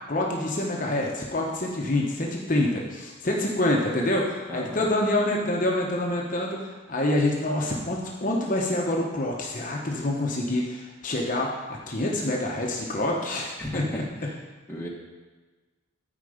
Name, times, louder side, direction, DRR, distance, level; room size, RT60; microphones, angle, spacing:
voice 1, 0.0-14.0, left 1 dB, 40° left, -1 dB, 1.0 m, -26 dB
voice 2, 4.5-4.9 13.6-14.3 14.7-14.9, left 1 dB, 10° left, -3 dB, 1.2 m, -35 dB
12.5 x 4.7 x 5.0 m, 1.3 s
head